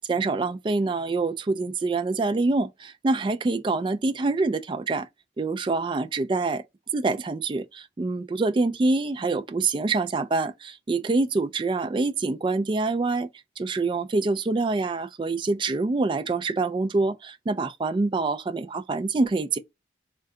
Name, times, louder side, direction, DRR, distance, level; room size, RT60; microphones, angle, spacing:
voice 1, 0.1-5.1 5.4-6.6 6.9-13.3 13.6-19.6, right 3 dB, 25° right, 0.3 m, -26 dB
3.7 x 2.2 x 3.5 m
head